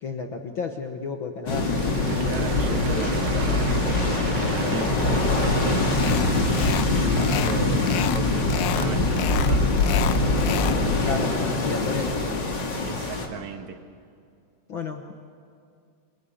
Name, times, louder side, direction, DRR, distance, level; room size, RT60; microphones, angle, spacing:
voice 1, 0.0-1.7 11.0-12.4 14.7-15.1, left 4 dB, 60° left, 4 dB, 1.3 m, -32 dB
sound 1, 1.5-13.3, left 2 dB, 35° left, 2.7 m, -23 dB
Applause, 1.5-8.6, right 8 dB, 80° right, 3.0 m, -40 dB
voice 2, 2.3-5.8 6.4-9.8 12.8-13.8, right 6 dB, 60° right, 7 dB, 2.5 m, -36 dB
sound 2, 5.9-6.3 6.5-6.9 7.1-8.2 8.5-8.9 9.2-10.8, left 12 dB, 85° left, 2.6 m, -31 dB
28.5 x 23.0 x 8.6 m, 2.4 s
omnidirectional pair, 4.0 m